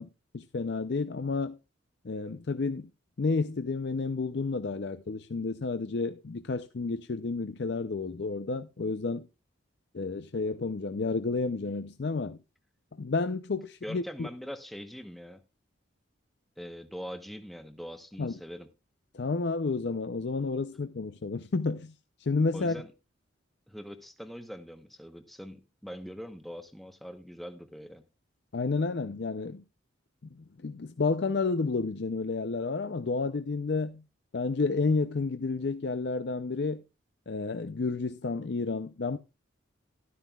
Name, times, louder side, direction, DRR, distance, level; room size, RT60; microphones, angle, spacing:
voice 1, 0.0-1.6 2.0-2.9 3.2-9.3 9.9-12.4 13.0-14.3 18.2-18.3 19.1-21.9 22.2-22.8 28.5-29.6 30.3-34.0 34.3-36.8 37.3-39.2, left 3 dB, 55° left, 0.5 m, -31 dB
voice 2, 13.8-15.4 16.6-18.7 22.5-22.9 23.7-28.0, equal, ahead, 0.9 m, -42 dB
13.0 x 12.0 x 2.3 m
head